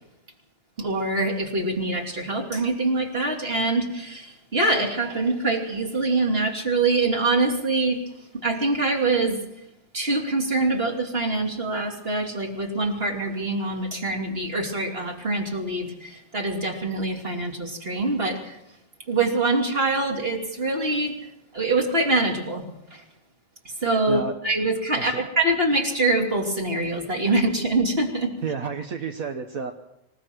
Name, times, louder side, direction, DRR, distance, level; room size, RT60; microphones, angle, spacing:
voice 1, 0.8-8.0 8.4-9.4 9.9-18.6 19.1-21.2 21.5-22.6 22.9-23.0 23.8-28.3, right 2 dB, 40° right, 1 dB, 3.4 m, -24 dB
voice 2, 28.4-29.7, right 5 dB, 70° right, 5 dB, 1.6 m, -30 dB
26.0 x 16.5 x 6.2 m, 0.82 s
omnidirectional pair, 1.5 m